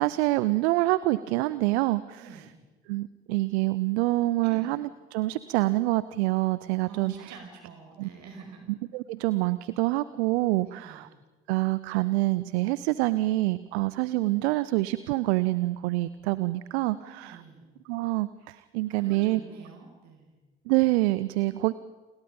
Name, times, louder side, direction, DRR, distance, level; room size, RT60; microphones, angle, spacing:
voice 1, 0.0-2.4 2.9-7.4 8.0-8.1 8.9-11.1 11.5-17.4 17.9-19.4 20.7-21.7, right 19 dB, 75° right, 17 dB, 0.7 m, -26 dB
voice 2, 2.2-2.5 4.4-4.7 6.8-8.6 10.6-11.0 17.0-17.7 18.9-20.3, right 5 dB, 60° right, 4 dB, 6.1 m, -46 dB
30.0 x 21.5 x 5.4 m, 1.3 s
figure-of-eight pair, 50°, 33 cm